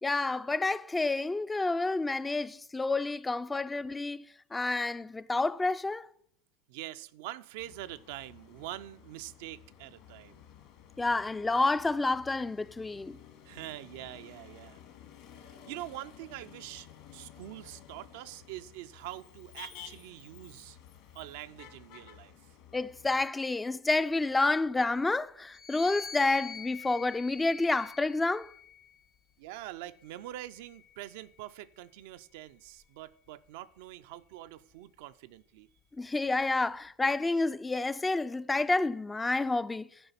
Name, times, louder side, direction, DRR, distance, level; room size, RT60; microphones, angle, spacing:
voice 1, 0.0-4.2 4.5-6.1 11.0-13.2 22.7-28.5 36.0-39.9, left 3 dB, 15° left, 0.3 m, -29 dB
voice 2, 6.7-10.4 13.5-14.8 15.5-20.8 21.1-22.3 29.4-35.7, right 14 dB, 65° right, 0.4 m, -44 dB
Motor vehicle (road), 7.6-23.3, left 9 dB, 65° left, 1.7 m, -53 dB
sound 1, 25.5-29.1 29.9-31.5, left 5 dB, 40° left, 0.8 m, -46 dB
11.0 x 5.0 x 5.6 m
hypercardioid pair, 85°, 0 cm